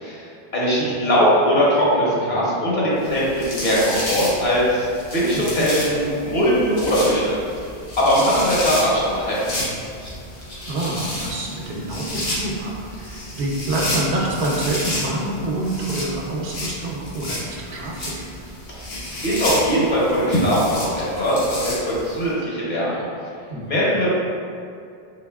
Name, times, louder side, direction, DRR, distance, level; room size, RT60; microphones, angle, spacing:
voice 1, 0.0-7.7 8.0-9.4 18.7-18.9 19.2-23.1 23.7-24.1, equal, 50° left, -7 dB, 1.0 m, -20 dB
sound 1, 3.0-22.2, left 1 dB, 75° left, 1.2 m, -31 dB
voice 2, 5.3-5.7 10.7-18.3 23.5-23.8, right 2 dB, 80° right, -2 dB, 0.9 m, -27 dB
4.0 x 3.1 x 2.3 m, 2.4 s
omnidirectional pair, 1.1 m